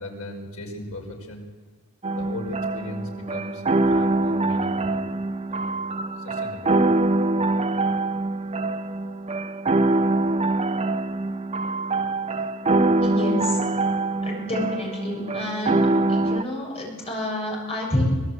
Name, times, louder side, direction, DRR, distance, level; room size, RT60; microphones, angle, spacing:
voice 1, 0.0-1.5 2.1-5.2 5.5-6.8, left 1 dB, 75° left, 2 dB, 5.2 m, -38 dB
sound 1, 2.0-16.4, right 2 dB, 30° right, 0.7 m, -24 dB
voice 2, 13.0-13.6 14.2-18.0, left 1 dB, 25° left, -2 dB, 7.1 m, -29 dB
24.0 x 18.5 x 8.1 m, 1.4 s
head